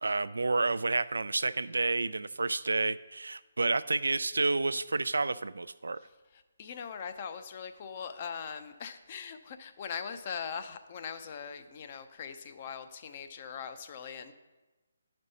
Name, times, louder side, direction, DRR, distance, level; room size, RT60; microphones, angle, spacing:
voice 1, 0.0-6.0, right 3 dB, 75° right, 15 dB, 0.3 m, -30 dB
voice 2, 6.6-14.3, left 6 dB, 40° left, 9 dB, 0.6 m, -41 dB
11.0 x 5.3 x 4.1 m, 1.2 s
figure-of-eight pair, 145°, 0 cm